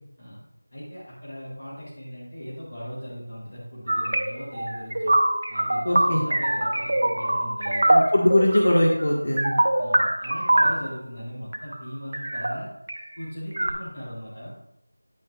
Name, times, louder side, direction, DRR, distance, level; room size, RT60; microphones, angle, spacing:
voice 1, 0.7-5.1 5.5-7.9 9.8-12.7 13.2-14.5, equal, 35° left, -9 dB, 3.3 m, -38 dB
sound 1, 3.9-11.0 11.5-11.8 12.1-13.0 13.5-13.7, right 1 dB, 45° right, 0.9 m, -23 dB
voice 2, 5.8-6.2 7.9-9.5, left 1 dB, 60° left, -2 dB, 1.7 m, -21 dB
10.5 x 10.0 x 2.5 m, 0.83 s
figure-of-eight pair, 180°, 0 cm